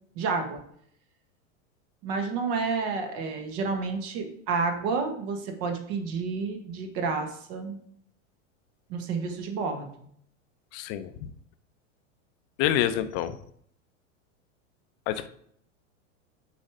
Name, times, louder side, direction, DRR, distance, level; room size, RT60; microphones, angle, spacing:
voice 1, 0.1-0.6 2.0-7.8 8.9-10.1, right 4 dB, 50° right, 4 dB, 1.5 m, -30 dB
voice 2, 10.7-11.1 12.6-13.3 15.1-15.3, left 11 dB, 50° left, 12 dB, 0.7 m, -26 dB
6.7 x 4.9 x 4.9 m, 0.66 s
hypercardioid pair, 115°, 38 cm